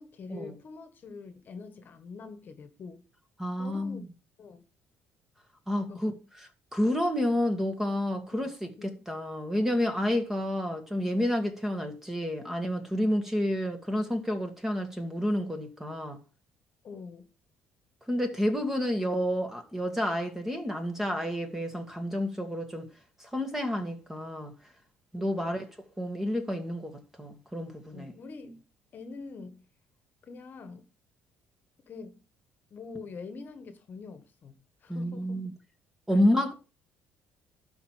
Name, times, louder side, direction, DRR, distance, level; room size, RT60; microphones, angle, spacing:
voice 1, 0.0-3.0 3.6-4.1 4.4-4.6 5.7-6.1 8.4-8.5 8.8-8.9 16.8-17.3 25.1-25.5 27.9-28.6 28.9-29.7 30.3-30.8 31.9-32.2 32.7-35.5 36.1-36.2, left 4 dB, 45° left, 1.6 m, -45 dB
voice 2, 3.4-4.1 5.7-6.1 6.7-16.2 18.1-22.9 23.2-24.5 25.1-25.6 26.0-28.2 34.9-35.5 36.1-36.5, left 1 dB, 5° right, 2.0 m, -29 dB
12.0 x 4.7 x 7.4 m
cardioid pair, 120°, 5 cm